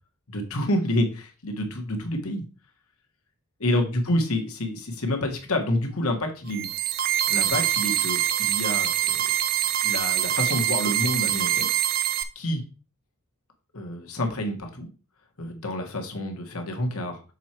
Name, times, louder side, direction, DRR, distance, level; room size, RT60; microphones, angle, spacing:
voice 1, 0.3-2.4 3.6-6.7 7.3-9.2 9.8-11.7 12.3-12.6 13.7-14.9 15.4-17.2, left 1 dB, 80° left, 3 dB, 1.7 m, -28 dB
sound 1, 6.5-12.2, right 11 dB, 45° right, 0.6 m, -24 dB
6.9 x 4.6 x 4.4 m, 0.35 s
head